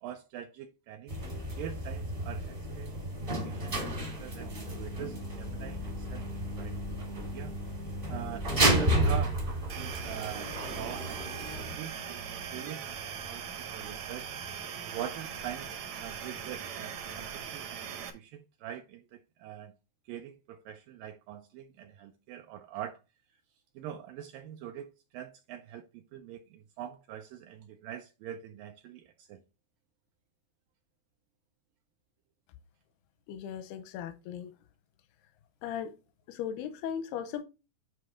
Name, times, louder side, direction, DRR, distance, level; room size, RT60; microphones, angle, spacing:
voice 1, 0.0-1.2 1.6-7.5 8.1-8.5 8.8-9.4 9.7-14.3 14.8-15.7 16.0-19.7 20.1-23.0 23.8-29.4, right 10 dB, 90° right, 1.9 m, -44 dB
sound 1, 1.1-11.7, right 1 dB, 45° right, 0.6 m, -32 dB
sound 2, 9.7-18.1, right 7 dB, 70° right, 1.7 m, -40 dB
voice 2, 33.3-34.5 35.6-35.9 36.3-37.4, left 9 dB, 85° left, 2.6 m, -37 dB
9.5 x 3.2 x 5.0 m
omnidirectional pair, 4.6 m